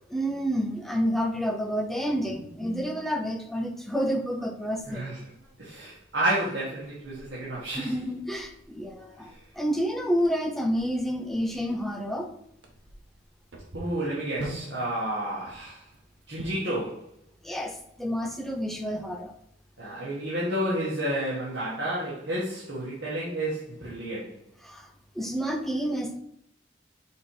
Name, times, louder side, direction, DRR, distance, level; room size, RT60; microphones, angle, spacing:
voice 1, 0.1-5.2 7.8-12.3 17.4-19.4 24.6-24.9 25.1-26.2, equal, ahead, 3 dB, 0.7 m, -29 dB
sound 1, 4.7-16.8, right 1 dB, 80° right, 1.2 m, -47 dB
voice 2, 4.9-5.2 5.6-7.9 13.7-15.9 16.3-17.0 19.8-24.3, right 1 dB, 65° right, -8 dB, 1.8 m, -30 dB
6.5 x 3.1 x 4.8 m, 0.75 s
head